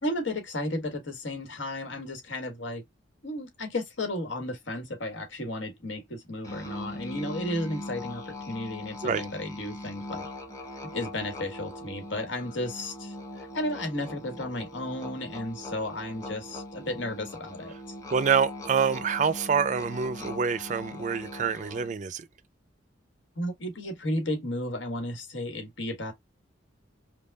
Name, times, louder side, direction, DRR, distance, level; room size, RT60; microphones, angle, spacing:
voice 1, 0.0-2.8 3.2-10.3 10.8-17.9 23.4-26.1, left 1 dB, 85° left, 1.5 m, -33 dB
Musical instrument, 6.4-22.0, left 1 dB, 20° left, 1.1 m, -41 dB
voice 2, 18.1-22.3, right 6 dB, 40° right, 0.4 m, -26 dB
5.2 x 2.3 x 2.2 m
head